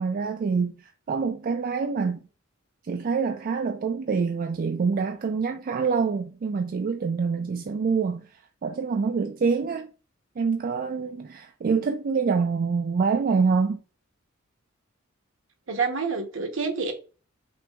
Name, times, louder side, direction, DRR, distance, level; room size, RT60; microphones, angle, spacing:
voice 1, 0.0-2.2 2.9-8.3 8.6-9.9 10.4-13.8, right 5 dB, 45° right, 0.3 m, -26 dB
voice 2, 15.7-16.9, right 4 dB, 65° right, 0.8 m, -27 dB
5.9 x 2.6 x 2.3 m
head